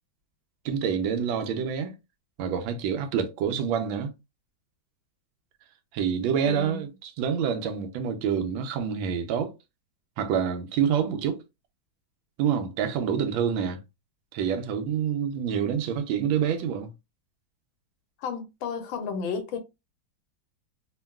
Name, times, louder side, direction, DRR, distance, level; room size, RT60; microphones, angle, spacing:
voice 1, 0.6-1.9 2.4-4.1 5.9-9.5 10.2-11.4 12.4-13.8 14.3-16.9, right 7 dB, 90° right, 1.4 m, -27 dB
voice 2, 6.4-6.8 18.2-19.6, left 5 dB, 85° left, 1.5 m, -32 dB
3.5 x 2.2 x 2.2 m
omnidirectional pair, 2.1 m